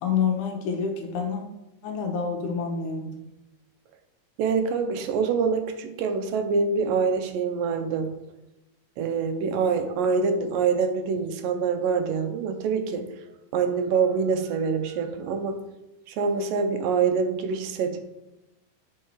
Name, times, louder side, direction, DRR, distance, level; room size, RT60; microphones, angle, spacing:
voice 1, 0.0-1.4 1.8-3.2, left 6 dB, 75° left, 2 dB, 2.3 m, -27 dB
voice 2, 4.4-8.1 9.0-13.0 13.5-15.6 16.1-18.0, right 5 dB, 85° right, 7 dB, 2.5 m, -25 dB
8.0 x 5.6 x 4.6 m, 0.94 s
omnidirectional pair, 3.8 m